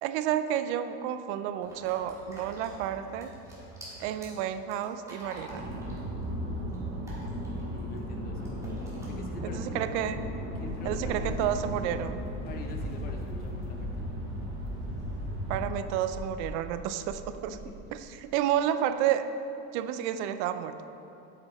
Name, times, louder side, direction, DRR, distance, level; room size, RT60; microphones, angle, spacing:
voice 1, 0.0-3.3 4.0-5.7 9.4-10.2 10.8-12.3 15.5-17.6 18.2-19.3 19.7-20.8, right 10 dB, 80° right, 11 dB, 0.5 m, -30 dB
sound 1, 1.6-8.0 8.4-9.0, right 1 dB, 10° right, 1.7 m, -48 dB
sound 2, 5.5-15.7, equal, 30° right, 1.3 m, -35 dB
voice 2, 7.7-8.6 9.0-9.9 10.5-11.3 12.4-14.1, left 3 dB, 25° left, 4 dB, 0.6 m, -44 dB
sound 3, 10.6-11.9 12.8-14.1 14.7-15.4 16.1-17.7, equal, 10° left, 1.4 m, -43 dB
7.9 x 6.4 x 4.2 m, 2.8 s
cardioid pair, 165°, 34 cm